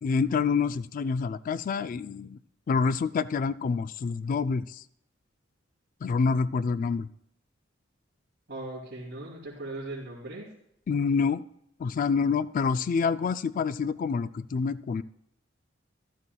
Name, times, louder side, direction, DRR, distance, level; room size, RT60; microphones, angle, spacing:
voice 1, 0.0-2.4 2.7-4.8 6.0-7.1 10.9-11.4 11.8-15.0, left 5 dB, 45° left, 15 dB, 0.3 m, -27 dB
voice 2, 8.5-10.5, right 2 dB, 65° right, -9 dB, 2.8 m, -38 dB
13.5 x 12.0 x 2.3 m, 0.71 s
head